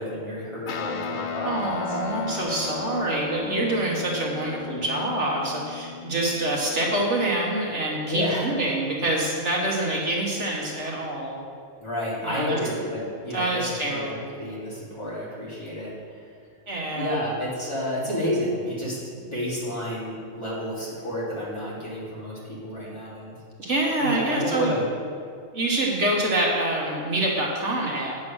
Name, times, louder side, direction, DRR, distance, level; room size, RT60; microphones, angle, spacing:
voice 1, 0.0-1.8 8.1-8.5 11.8-16.3 16.9-23.4 24.0-24.8, left 1 dB, 20° left, -9 dB, 3.0 m, -31 dB
Guitar, 0.7-8.3, left 5 dB, 70° left, 1.1 m, -35 dB
voice 2, 1.4-11.4 12.2-12.6 13.3-14.2 16.7-17.4 23.6-24.8 25.5-28.2, right 1 dB, 60° right, -2 dB, 1.5 m, -26 dB
8.7 x 7.0 x 6.1 m, 2.3 s
omnidirectional pair, 1.4 m